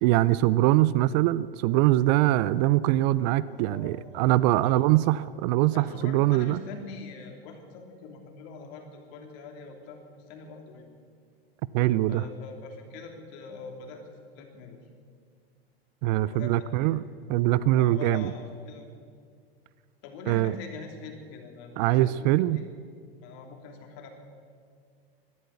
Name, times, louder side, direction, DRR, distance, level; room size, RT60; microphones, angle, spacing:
voice 1, 0.0-6.6 11.7-12.2 16.0-17.0 17.3-18.3 20.3-20.5 21.8-22.6, right 15 dB, 45° right, 18 dB, 0.5 m, -23 dB
voice 2, 3.4-4.3 4.6-4.8 5.7-11.0 12.1-14.8 16.2-17.0 17.7-18.9 20.0-22.6 23.2-24.1, left 4 dB, 50° left, 3 dB, 2.9 m, -44 dB
14.5 x 12.0 x 8.1 m, 2.1 s
hypercardioid pair, 115°, 31 cm